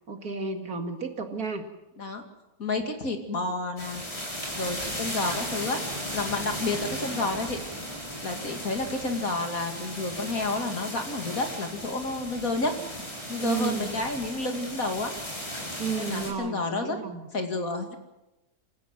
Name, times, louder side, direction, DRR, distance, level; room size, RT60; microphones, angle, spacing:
voice 1, 0.1-1.7 13.4-13.9 15.8-17.2, right 5 dB, 65° right, 5 dB, 2.6 m, -32 dB
voice 2, 2.6-4.0 4.5-5.8 6.1-7.6 8.2-12.7 13.3-15.1 15.9-17.0 17.3-18.0, left 3 dB, 60° left, 5 dB, 2.9 m, -30 dB
sound 1, 3.8-16.3, equal, 20° left, 5.2 m, -36 dB
28.0 x 15.5 x 7.6 m, 0.98 s
omnidirectional pair, 1.7 m